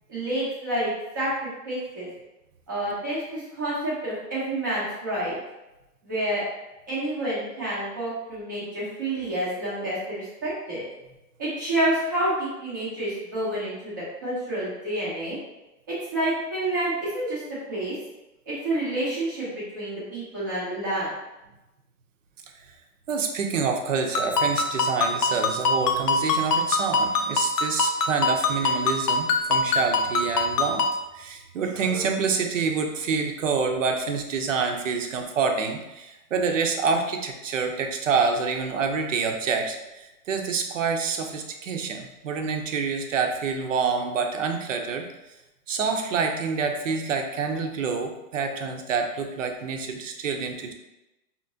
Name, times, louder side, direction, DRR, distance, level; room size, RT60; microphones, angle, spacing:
voice 1, 0.1-2.1 2.7-5.3 6.0-6.4 6.9-10.8 11.4-13.9 14.2-15.4 16.1-17.4 17.7-17.9 18.5-21.1, right 1 dB, 15° right, -9 dB, 0.6 m, -28 dB
voice 2, 23.1-30.9 31.1-45.1 45.7-50.7, right 5 dB, 50° right, 4 dB, 0.7 m, -27 dB
Ringtone, 24.1-31.0, left 3 dB, 75° left, 0.7 m, -24 dB
5.6 x 2.9 x 2.6 m, 0.97 s
hypercardioid pair, 170°, 48 cm